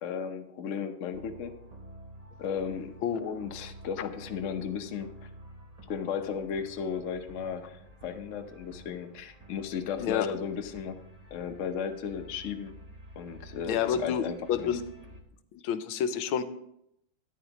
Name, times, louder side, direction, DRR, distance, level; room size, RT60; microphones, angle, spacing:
voice 1, 0.0-1.5 2.4-5.1 5.9-11.0 11.3-12.7 13.2-14.7, left 7 dB, 60° left, 6 dB, 0.8 m, -35 dB
sound 1, 1.1-15.2, right 1 dB, 90° right, 0.3 m, -50 dB
voice 2, 13.7-14.2 14.5-14.8 15.5-16.4, left 8 dB, 80° left, 12 dB, 1.5 m, -28 dB
13.0 x 10.0 x 2.9 m, 0.78 s
omnidirectional pair, 2.2 m